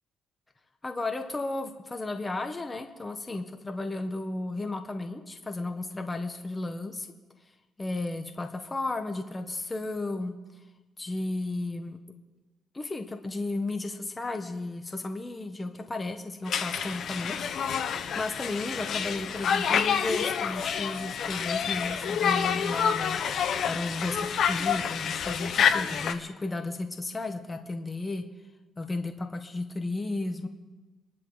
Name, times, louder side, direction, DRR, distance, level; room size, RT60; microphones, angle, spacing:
voice 1, 0.8-7.1 7.8-10.3 11.0-12.0 12.7-28.3 28.8-30.5, left 2 dB, 20° left, 5 dB, 1.3 m, -34 dB
Conversation, 16.5-26.1, left 7 dB, 65° left, 1.2 m, -28 dB
26.5 x 11.5 x 4.0 m, 1.2 s
cardioid pair, 90°, 0 cm